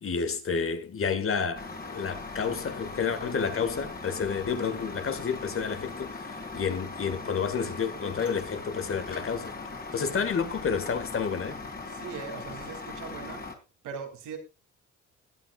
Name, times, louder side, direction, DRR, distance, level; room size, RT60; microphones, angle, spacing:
voice 1, 0.0-9.6 9.9-11.6, left 6 dB, 45° left, 1.9 m, -30 dB
Truck, 1.5-13.5, left 3 dB, 30° left, 3.3 m, -40 dB
voice 2, 11.9-13.5 13.8-14.4, right 6 dB, 85° right, 3.3 m, -40 dB
20.5 x 9.1 x 2.5 m
cardioid pair, 90°, 30 cm